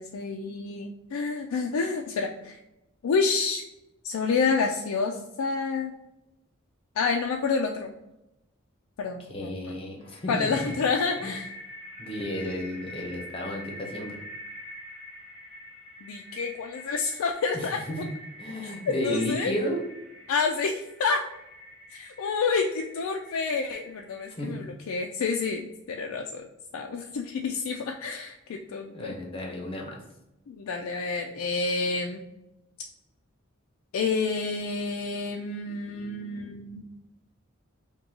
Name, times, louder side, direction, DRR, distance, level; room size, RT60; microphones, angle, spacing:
voice 1, 0.0-2.6 3.0-3.6 4.0-5.9 7.0-7.9 9.0-9.7 10.3-11.5 16.0-17.8 18.9-19.5 20.3-21.2 21.9-26.4 26.7-29.1 30.5-32.2 33.9-36.8, left 4 dB, 85° left, 2 dB, 0.4 m, -29 dB
voice 2, 9.2-10.7 11.2-11.4 12.0-14.2 17.5-18.0 18.4-19.8 24.4-24.6 28.9-30.0, left 1 dB, 25° left, 0 dB, 0.8 m, -33 dB
sound 1, 10.0-24.3, left 1 dB, 5° right, 1.1 m, -45 dB
5.2 x 2.2 x 2.8 m, 0.92 s
head